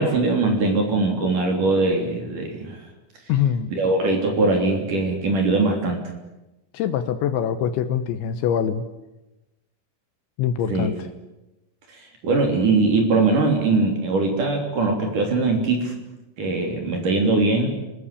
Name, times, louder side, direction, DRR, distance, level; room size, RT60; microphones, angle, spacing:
voice 1, 0.0-2.8 3.7-6.0 10.7-10.9 12.2-15.9 16.4-17.7, right 3 dB, 45° right, 3 dB, 4.4 m, -21 dB
voice 2, 3.3-3.7 6.7-8.8 10.4-10.9, left 9 dB, 75° left, 10 dB, 3.1 m, -23 dB
28.0 x 19.5 x 8.5 m, 1.0 s
omnidirectional pair, 5.8 m